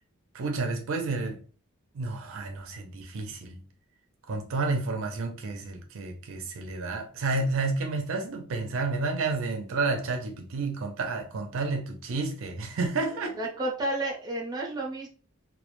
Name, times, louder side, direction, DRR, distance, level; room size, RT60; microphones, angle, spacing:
voice 1, 0.3-1.4 1.9-3.6 4.3-13.3, right 3 dB, 65° right, 0.4 m, -30 dB
voice 2, 13.4-15.1, right 1 dB, 20° right, 0.6 m, -31 dB
2.2 x 2.1 x 2.9 m
head